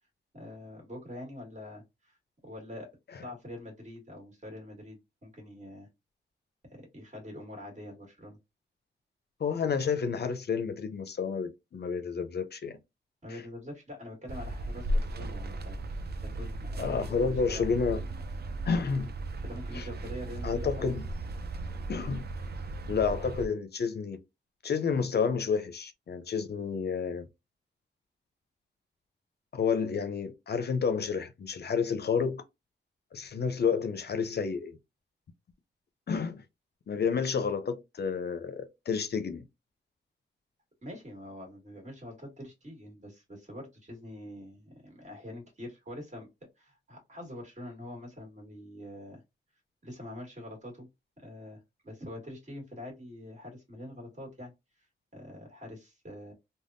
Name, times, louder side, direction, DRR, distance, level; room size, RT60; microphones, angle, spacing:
voice 1, 0.3-2.2 2.4-2.9 3.2-5.9 6.9-8.4 13.2-17.7 19.4-20.9 40.8-46.3 46.6-49.2 49.8-50.9 51.2-54.9 55.1-56.3, left 1 dB, 40° right, 1.6 m, -45 dB
voice 2, 9.4-12.7 16.8-18.0 18.6-19.1 19.7-19.9 20.4-21.0 21.9-22.2 22.9-24.2 24.6-27.3 29.5-32.4 33.1-34.8 36.1-36.4 36.9-39.4, left 6 dB, 60° left, 0.5 m, -30 dB
sound 1, 14.3-23.5, right 1 dB, 55° right, 0.4 m, -36 dB
3.4 x 2.1 x 2.5 m
wide cardioid pair, 125°, 19 cm